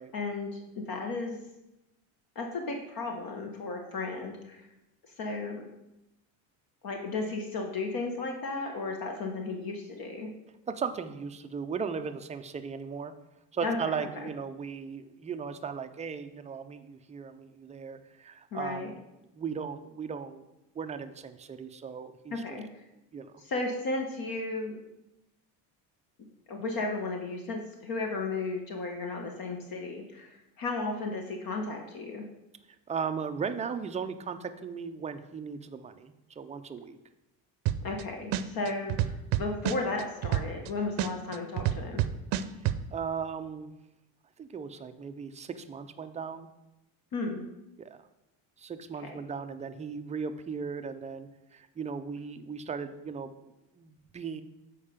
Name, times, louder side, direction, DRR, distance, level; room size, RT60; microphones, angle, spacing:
voice 1, 0.0-1.4 2.3-4.6 5.2-5.7 6.8-10.3 13.6-14.1 18.5-18.9 22.3-22.7 23.4-24.8 26.5-32.2 37.8-42.0 47.1-47.5 49.0-49.2, left 3 dB, 50° left, 3 dB, 1.1 m, -34 dB
voice 2, 10.7-13.1 13.5-19.0 19.3-20.4 20.8-22.6 23.1-23.3 32.9-37.0 41.0-41.2 42.9-43.7 44.4-46.5 47.8-48.0 48.6-54.4, right 6 dB, 20° right, 9 dB, 0.3 m, -37 dB
sound 1, 37.7-38.0 38.3-40.7 41.0-42.8, right 12 dB, 65° right, 0.6 m, -27 dB
7.2 x 4.6 x 5.0 m, 0.93 s
cardioid pair, 110°, 44 cm